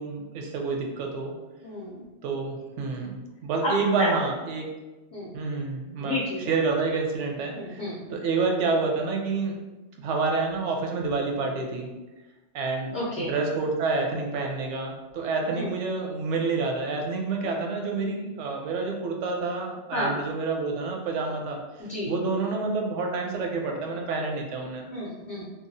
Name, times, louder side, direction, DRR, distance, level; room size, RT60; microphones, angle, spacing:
voice 1, 0.0-1.3 2.2-4.7 5.3-6.2 6.5-9.6 10.0-11.9 12.5-21.6 22.1-24.9, right 4 dB, 80° right, 1 dB, 0.9 m, -28 dB
voice 2, 1.6-2.1 3.6-4.1 5.1-5.4 6.0-6.4 7.5-8.2 12.9-13.3 15.5-15.7 19.9-20.2 21.8-22.1 24.9-25.5, left 1 dB, 50° left, -7 dB, 0.6 m, -31 dB
2.9 x 2.2 x 2.6 m, 1.1 s
omnidirectional pair, 1.2 m